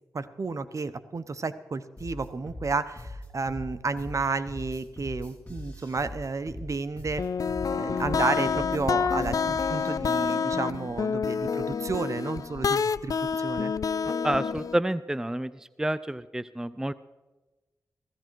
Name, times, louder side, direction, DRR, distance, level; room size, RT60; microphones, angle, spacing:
voice 1, 0.1-7.2 7.7-13.7, right 4 dB, 50° right, 13 dB, 0.8 m, -32 dB
sound 1, 2.0-10.0, left 1 dB, 20° left, 3.1 m, -41 dB
sound 2, 7.2-14.8, left 6 dB, 60° left, 0.4 m, -28 dB
voice 2, 14.1-15.5 15.8-16.9, right 1 dB, 10° right, 16 dB, 0.4 m, -29 dB
17.0 x 15.0 x 4.6 m, 1.1 s
cardioid pair, 55°, 7 cm